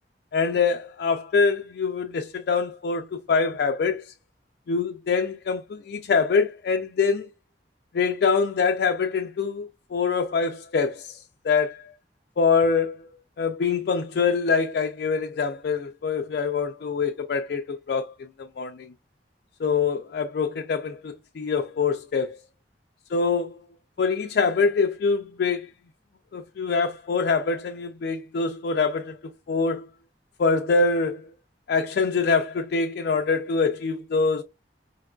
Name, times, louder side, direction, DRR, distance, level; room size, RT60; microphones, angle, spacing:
voice 1, 0.3-4.1 4.7-7.3 7.9-11.9 12.4-13.1 13.4-18.9 19.6-22.4 23.1-23.6 24.0-25.7 26.3-29.2 29.5-29.9 30.4-31.3 31.7-34.4, left 5 dB, 60° left, 0.3 m, -24 dB
4.4 x 2.3 x 2.2 m
head